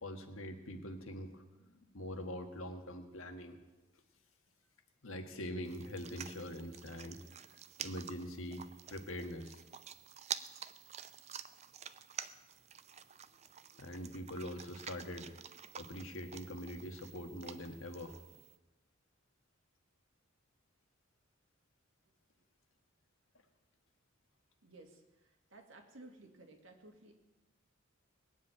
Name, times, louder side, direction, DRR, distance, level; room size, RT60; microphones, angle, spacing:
voice 1, 0.0-3.6 5.0-7.2 7.8-9.6 13.8-15.4 15.8-18.1, equal, 85° left, 5 dB, 1.7 m, -44 dB
sound 1, 5.6-18.6, right 8 dB, 35° right, 0.5 m, -49 dB
voice 2, 24.6-27.1, right 2 dB, 70° right, 3 dB, 2.3 m, -56 dB
20.0 x 7.3 x 9.0 m, 1.1 s
head